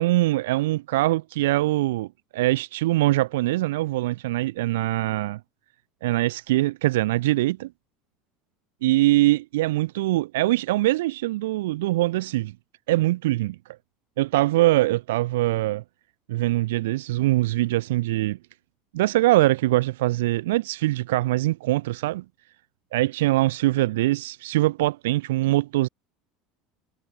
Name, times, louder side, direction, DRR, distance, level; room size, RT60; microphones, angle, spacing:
voice 1, 0.0-2.1 2.3-5.4 6.0-7.7 8.8-12.5 12.9-13.6 14.2-15.8 16.3-18.4 18.9-22.2 22.9-25.9, right 17 dB, 85° right, 0.4 m, -23 dB
supercardioid pair, 115°, 0 cm